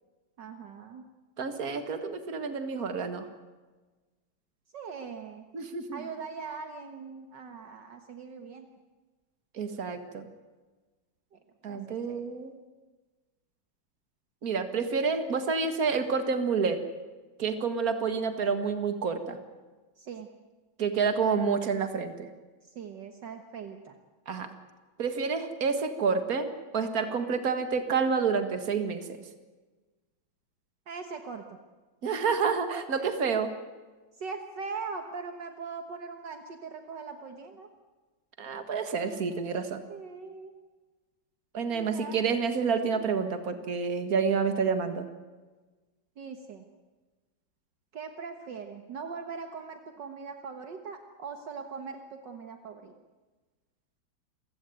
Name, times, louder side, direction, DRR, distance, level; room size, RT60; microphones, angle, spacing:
voice 1, 0.4-1.1 4.7-5.5 5.9-8.7 11.3-11.4 11.7-12.3 20.0-20.3 22.6-24.0 30.9-31.6 33.0-33.1 34.2-37.7 39.9-40.5 41.7-42.2 46.2-46.7 47.9-52.9, right 5 dB, 65° right, 6 dB, 2.0 m, -41 dB
voice 2, 1.4-3.3 5.5-6.0 9.5-10.3 11.6-12.5 14.4-16.8 17.4-19.4 20.8-22.3 24.3-24.5 25.0-29.2 32.0-33.5 38.4-39.8 41.5-45.1, right 5 dB, 50° right, 8 dB, 2.2 m, -29 dB
28.5 x 16.0 x 9.3 m, 1.3 s
omnidirectional pair, 2.1 m